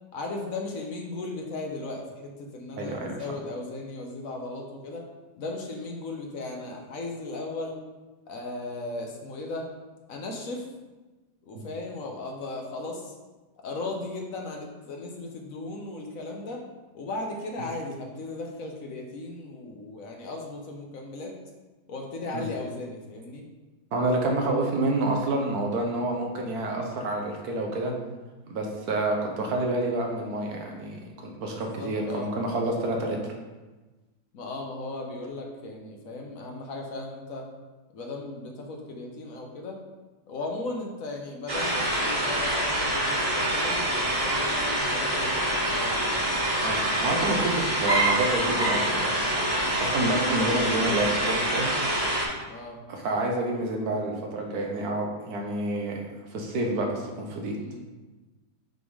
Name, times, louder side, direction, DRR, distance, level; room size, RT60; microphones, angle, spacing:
voice 1, 0.1-5.0 5.4-7.8 8.3-9.7 10.1-10.7 11.4-13.1 13.6-16.6 16.9-21.4 21.9-23.4 31.4-32.6 34.3-37.5 37.9-39.8 40.3-46.3 52.5-52.8 57.5-57.9, left 2 dB, 60° left, 1 dB, 1.1 m, -36 dB
voice 2, 2.8-3.1 11.5-11.6 22.3-22.5 23.9-27.9 28.5-33.2 46.6-51.7 52.9-56.0 56.3-57.6, right 2 dB, 70° right, 1 dB, 1.3 m, -28 dB
sound 1, 41.5-52.3, right 1 dB, 30° right, 1.5 m, -26 dB
6.0 x 3.6 x 4.8 m, 1.2 s
omnidirectional pair, 1.8 m